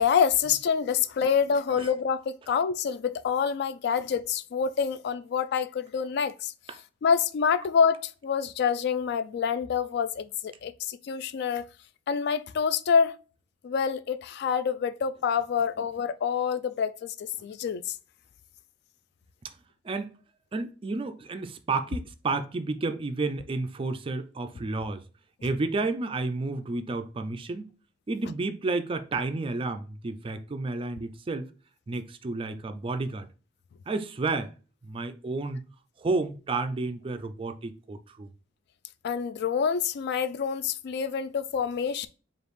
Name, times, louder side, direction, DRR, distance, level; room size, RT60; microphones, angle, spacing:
voice 1, 0.0-6.5 7.0-11.6 12.1-13.2 13.6-17.9 39.0-42.1, left 6 dB, 55° left, 0.3 m, -27 dB
voice 2, 20.5-25.0 25.4-27.7 28.1-31.5 31.9-33.3 33.9-34.5 34.8-35.6 36.0-38.3, right 3 dB, 25° right, 0.3 m, -31 dB
5.1 x 2.4 x 3.1 m
head